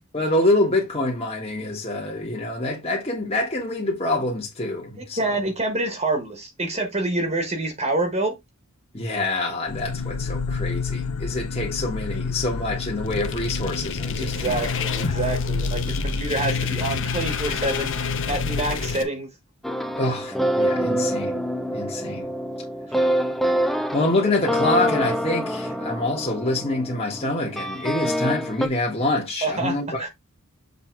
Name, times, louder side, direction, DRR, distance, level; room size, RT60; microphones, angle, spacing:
voice 1, 0.1-5.3 8.9-14.6 20.0-21.4 21.7-22.3 23.9-30.1, left 2 dB, 30° left, 1.7 m, -26 dB
voice 2, 5.0-8.4 14.2-19.3 29.4-30.1, right 2 dB, 30° right, 1.4 m, -27 dB
sound 1, 9.7-19.0, left 4 dB, 85° left, 0.6 m, -29 dB
sound 2, 13.0-19.0, left 4 dB, 65° left, 1.0 m, -30 dB
sound 3, 19.6-28.7, equal, ahead, 0.6 m, -26 dB
6.9 x 3.3 x 4.6 m
head